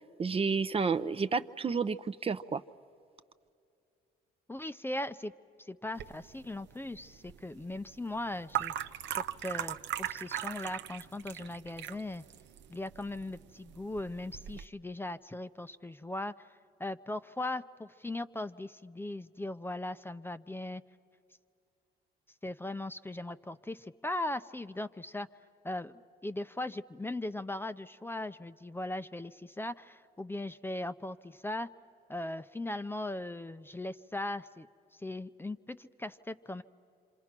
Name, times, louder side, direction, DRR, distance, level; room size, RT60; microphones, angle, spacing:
voice 1, 0.2-2.6, right 5 dB, 30° right, 12 dB, 0.6 m, -30 dB
voice 2, 4.5-5.3 5.7-8.7 9.1-12.2 12.7-16.5 16.8-20.8 22.4-25.3 25.6-31.7 32.1-34.7 35.0-36.6, left 1 dB, 10° left, 11 dB, 0.5 m, -39 dB
sound 1, 6.0-14.7, right 11 dB, 75° right, 0.7 m, -40 dB
27.5 x 26.0 x 6.0 m, 2.5 s
cardioid pair, 80°, 19 cm